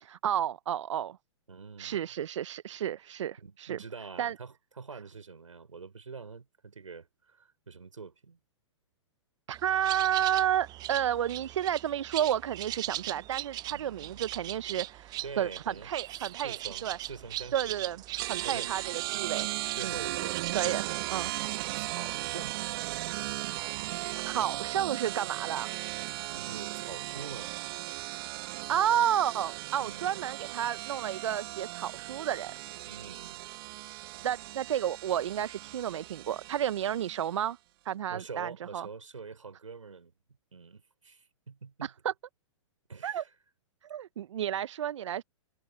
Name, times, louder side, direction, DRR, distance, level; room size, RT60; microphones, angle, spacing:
voice 1, 0.0-1.2 1.8-3.8 4.2-4.3 9.5-16.6 16.8-17.0 17.5-18.0 18.3-19.5 19.8-20.0 20.5-21.3 24.1-25.7 28.7-32.5 34.2-37.6 37.8-38.9 41.8-42.1 43.0-43.2 43.9-45.2, right 10 dB, 70° right, 0.8 m, -31 dB
voice 2, 1.5-2.1 3.4-8.4 13.7-14.2 15.2-15.9 16.4-17.8 18.4-18.7 19.8-21.0 21.8-22.5 26.4-27.5 29.8-30.2 32.9-33.5 38.1-40.1 40.5-41.9 42.9-43.3, right 5 dB, 90° right, 5.8 m, -45 dB
sound 1, 9.5-20.7, right 15 dB, 25° right, 0.6 m, -40 dB
sound 2, 18.2-37.3, right 18 dB, 50° right, 0.9 m, -37 dB
hypercardioid pair, 120°, 16 cm